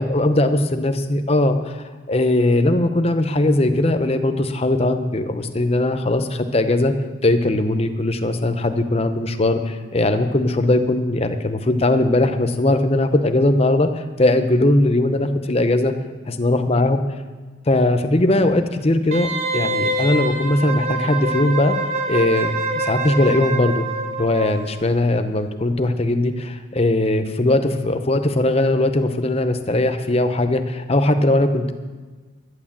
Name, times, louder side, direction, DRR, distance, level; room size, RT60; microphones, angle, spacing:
voice 1, 0.0-6.9 7.2-15.9 16.4-17.0 17.7-21.8 22.1-23.9 24.2-31.7, left 1 dB, 30° left, 8 dB, 0.7 m, -19 dB
Wind instrument woodwind instrument, 19.1-24.7 25.0-25.1, right 2 dB, 35° right, 1.2 m, -25 dB
11.0 x 9.7 x 7.3 m, 1.4 s
head